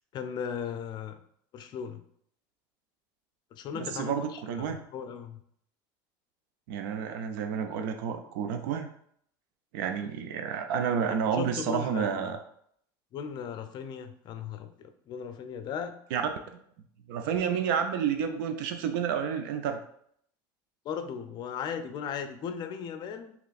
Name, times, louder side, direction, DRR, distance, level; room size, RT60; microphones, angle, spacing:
voice 1, 0.1-1.2 1.5-2.0 3.5-5.4 11.3-12.3 13.1-15.9 20.8-23.3, left 7 dB, 45° left, 9 dB, 0.5 m, -37 dB
voice 2, 3.7-4.8 6.7-8.9 9.7-12.4 16.1-16.2 17.1-19.8, right 7 dB, 80° right, 6 dB, 0.5 m, -30 dB
3.3 x 3.0 x 4.0 m, 0.67 s
supercardioid pair, 125°, 11 cm